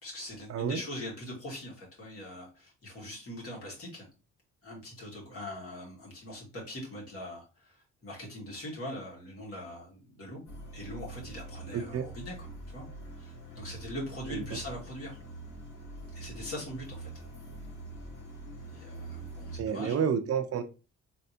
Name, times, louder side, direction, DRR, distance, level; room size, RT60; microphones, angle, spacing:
voice 1, 0.0-4.1 4.6-10.4 10.7-12.8 13.2-15.2 16.1-17.3 18.6-20.1, left 1 dB, 50° left, -2 dB, 1.9 m, -42 dB
sound 1, 10.5-19.6, right 2 dB, 90° left, 1.8 m, -44 dB
voice 2, 11.7-12.1 14.3-14.4 19.6-20.6, right 7 dB, 55° right, 9 dB, 0.5 m, -30 dB
4.5 x 3.3 x 2.7 m, 0.32 s
cardioid pair, 145°, 29 cm